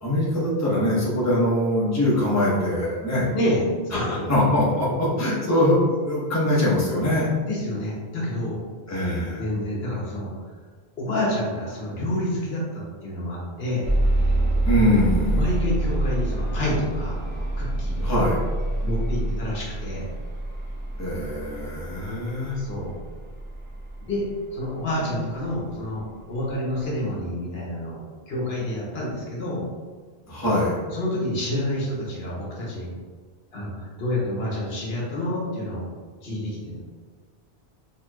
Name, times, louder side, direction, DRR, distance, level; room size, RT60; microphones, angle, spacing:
voice 1, 0.0-3.3 3.9-7.3 8.9-9.4 14.6-15.4 18.0-18.4 21.0-22.6 30.3-30.8, left 1 dB, 15° left, -7 dB, 0.9 m, -23 dB
voice 2, 3.3-3.6 3.9-4.3 7.5-8.6 9.4-10.3 11.0-13.9 15.3-17.2 17.6-18.1 18.8-20.1 22.6-22.9 24.1-24.3 24.5-28.0 28.3-29.6 30.9-32.9 33.5-35.8 36.2-36.8, left 1 dB, 70° left, -4 dB, 1.2 m, -28 dB
sound 1, 13.8-25.7 26.5-26.6 27.0-27.1, right 1 dB, 15° right, 0.6 m, -27 dB
4.4 x 3.2 x 2.3 m, 1.5 s
omnidirectional pair, 1.1 m